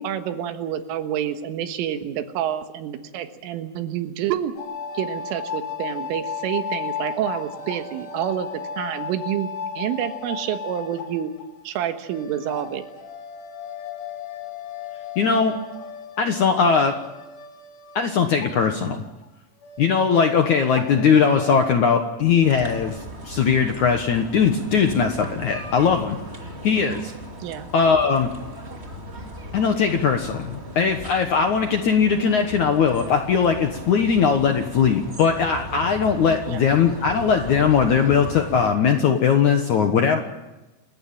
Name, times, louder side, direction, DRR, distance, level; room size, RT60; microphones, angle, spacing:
voice 1, 0.0-4.5 4.9-9.5 9.8-11.3 11.7-12.8 27.4-27.7 36.5-36.6, right 10 dB, 85° right, 8 dB, 4.0 m, -28 dB
sound 1, 4.6-18.9 19.2-19.3 19.6-21.6, left 6 dB, 50° left, 2.8 m, -35 dB
voice 2, 15.1-15.6 16.2-17.0 17.9-19.0 19.8-26.2 26.6-27.1 27.7-28.3 29.5-40.2, left 6 dB, 85° left, 5 dB, 1.7 m, -20 dB
sound 2, 22.4-38.7, equal, 25° right, 1.3 m, -37 dB
29.5 x 14.5 x 8.9 m, 1.0 s
omnidirectional pair, 5.7 m